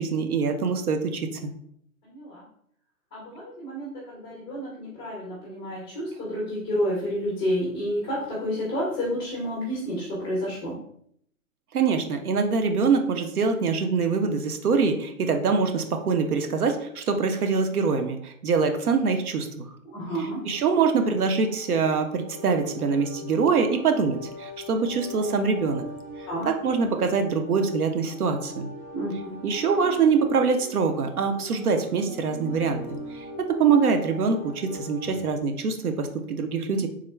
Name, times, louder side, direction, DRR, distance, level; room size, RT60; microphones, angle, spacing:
voice 1, 0.0-1.5 11.7-19.7 20.4-25.8 26.5-28.7 29.4-36.9, right 5 dB, 85° right, 6 dB, 0.7 m, -24 dB
voice 2, 2.0-2.4 3.1-10.7 19.9-20.5 26.3-26.5 28.9-29.4, equal, 15° left, -7 dB, 0.5 m, -30 dB
Rachmaninoff Barcarolle on Airy Synth Pad, 20.0-35.3, left 1 dB, 25° right, 1.1 m, -41 dB
3.6 x 2.1 x 3.2 m, 0.69 s
hypercardioid pair, 135°, 43 cm